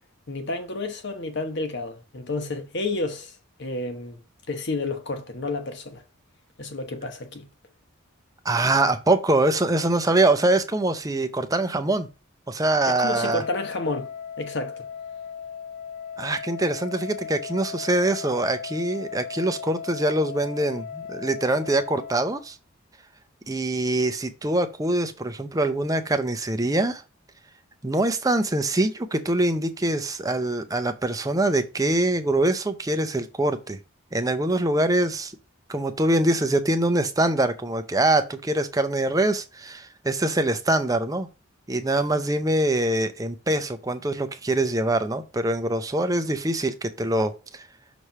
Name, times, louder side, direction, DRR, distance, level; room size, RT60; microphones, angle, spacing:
voice 1, 0.3-4.2 4.5-6.0 6.6-7.5 12.9-14.1 14.4-14.8, left 2 dB, 55° left, 1.0 m, -30 dB
voice 2, 8.4-12.1 12.5-13.4 16.2-22.6 23.5-27.0 27.8-33.8 34.1-35.3 35.7-41.3 41.7-47.6, right 2 dB, 15° right, 0.5 m, -24 dB
Wind instrument woodwind instrument, 13.1-22.4, left 7 dB, 80° left, 1.7 m, -37 dB
6.1 x 3.2 x 5.4 m
head